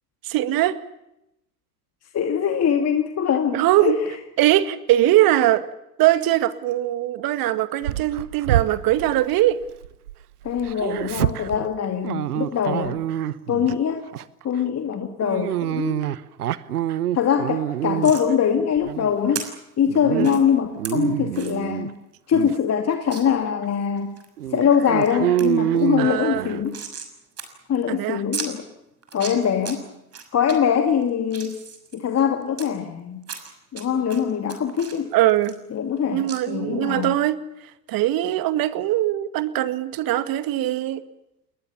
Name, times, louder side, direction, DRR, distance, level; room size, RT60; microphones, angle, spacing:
voice 1, 0.2-0.8 3.5-4.0 4.4-5.6 6.0-9.6 20.1-20.4 26.0-26.5 27.9-28.2 35.1-35.6 36.1-37.4 37.9-41.0, right 14 dB, 50° right, 12 dB, 2.1 m, -21 dB
voice 2, 2.1-4.0 10.4-13.0 13.5-14.0 14.4-16.0 17.1-19.5 19.8-22.0 22.3-24.2 24.5-26.8 27.7-28.7 29.1-29.8 30.3-31.6 31.9-33.2 33.7-35.1 35.7-37.2, left 8 dB, 35° left, 6 dB, 2.5 m, -23 dB
Dog, 7.8-10.1 10.4-13.8 14.1-14.4 15.2-18.3 18.8-19.5 19.9-20.3 20.6-21.9 22.3-22.6 23.2-23.3 23.6-23.7 24.4-26.7, right 12 dB, 80° right, 1.1 m, -26 dB
sound 1, 18.0-18.3 19.3-19.4 20.2-20.4 20.8-20.9 21.3-21.6 22.0-22.1 22.3-22.4 23.1-23.2 23.7-24.3 24.7-25.1 25.4-25.5 25.8-27.1 27.4-27.5 27.7-27.8 28.3-28.5 29.0-29.7 30.1-30.5 31.0-32.7 33.2-33.8 34.1-36.0 36.3-36.4, right 6 dB, 30° right, 6.4 m, -35 dB
30.0 x 21.0 x 7.2 m, 0.85 s
hypercardioid pair, 75°, 46 cm